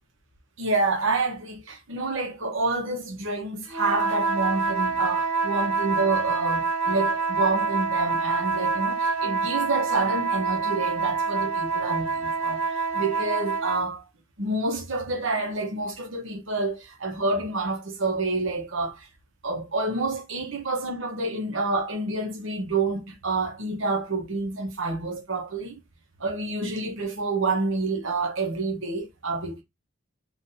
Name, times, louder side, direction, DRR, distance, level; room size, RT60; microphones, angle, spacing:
voice 1, 0.6-14.1 14.4-19.1 19.4-25.8 26.2-29.6, right 3 dB, 60° right, 1.0 m, -28 dB
sound 1, 3.7-13.9, right 4 dB, 90° right, 1.4 m, -26 dB
3.9 x 2.8 x 2.6 m
head